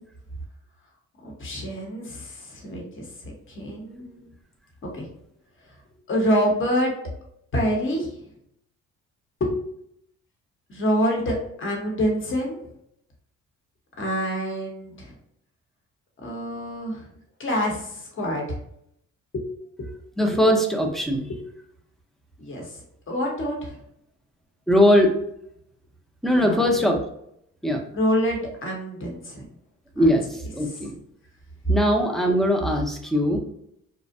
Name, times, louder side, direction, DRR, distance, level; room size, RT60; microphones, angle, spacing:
voice 1, 1.2-4.2 4.8-5.1 6.1-6.9 7.5-8.1 9.4-9.5 10.7-12.6 14.0-15.1 16.2-17.1 17.4-18.6 19.3-19.5 19.8-19.9 21.3-21.4 22.4-22.8 23.1-23.8 26.3-26.7 27.9-29.4 29.9-30.1 30.6-30.8, equal, 40° left, 0 dB, 0.9 m, -27 dB
voice 2, 20.2-21.2 24.7-25.1 26.2-27.0 27.6-27.8 30.0-30.9 31.7-33.4, equal, ahead, 2 dB, 0.5 m, -20 dB
2.5 x 2.1 x 2.5 m, 0.73 s
cardioid pair, 90°, 30 cm